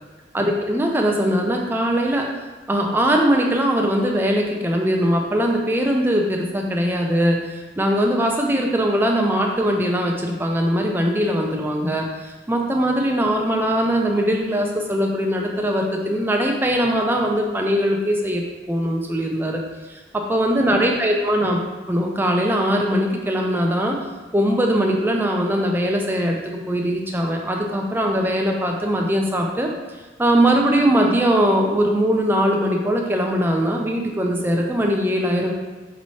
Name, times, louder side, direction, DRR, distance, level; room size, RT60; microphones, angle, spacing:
voice 1, 0.3-2.3 2.7-19.6 19.9-21.6 21.9-24.0 24.3-29.7 30.2-35.5, equal, 10° right, 1 dB, 0.3 m, -21 dB
5.3 x 3.1 x 2.7 m, 1.3 s
head